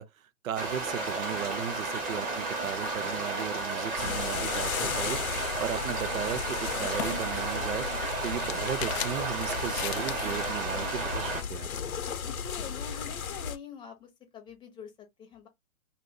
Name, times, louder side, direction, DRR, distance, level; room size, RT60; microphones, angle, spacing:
voice 1, 0.0-5.2 5.6-7.9 8.2-11.7, right 9 dB, 70° right, 0.6 m, -36 dB
sound 1, 0.5-11.4, right 3 dB, 20° right, 1.0 m, -33 dB
sound 2, 4.0-13.6, left 7 dB, 80° left, 0.8 m, -36 dB
sound 3, 6.2-10.6, left 10 dB, 50° left, 0.4 m, -40 dB
voice 2, 12.3-15.5, left 7 dB, 10° left, 0.7 m, -45 dB
2.6 x 2.5 x 4.0 m
hypercardioid pair, 125°, 42 cm